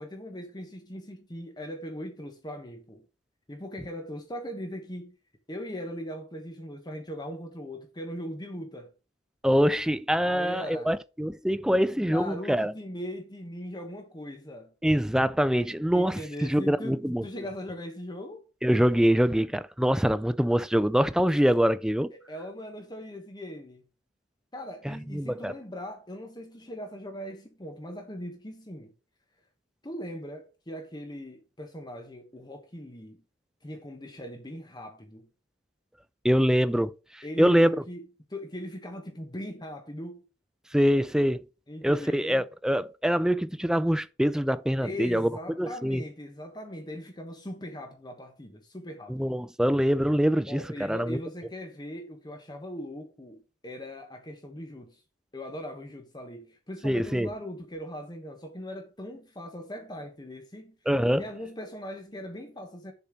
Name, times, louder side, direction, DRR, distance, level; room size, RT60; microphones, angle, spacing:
voice 1, 0.0-3.0 3.5-5.1 5.5-8.9 10.2-10.9 11.9-14.7 15.9-18.4 22.1-23.8 24.5-28.9 29.8-33.2 33.6-35.3 37.2-38.0 38.3-40.2 41.7-42.4 44.8-49.3 50.5-55.0 55.3-60.8 61.2-62.9, equal, 25° left, 1.2 m, -40 dB
voice 2, 9.4-12.7 14.8-17.3 18.6-22.1 24.8-25.5 36.2-37.7 40.7-41.4 41.8-45.3 45.6-46.0 49.1-51.2 56.8-57.3 60.9-61.2, equal, 5° right, 0.4 m, -24 dB
6.9 x 4.2 x 6.3 m
head